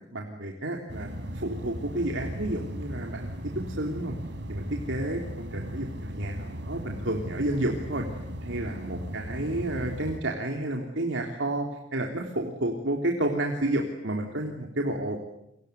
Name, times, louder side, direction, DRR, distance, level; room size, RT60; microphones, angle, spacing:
voice 1, 0.1-4.1 4.5-8.1 8.4-15.2, right 1 dB, 85° right, 1 dB, 3.4 m, -31 dB
sound 1, 0.9-10.2, equal, 65° right, 3.6 m, -37 dB
29.0 x 25.0 x 8.2 m, 0.80 s
head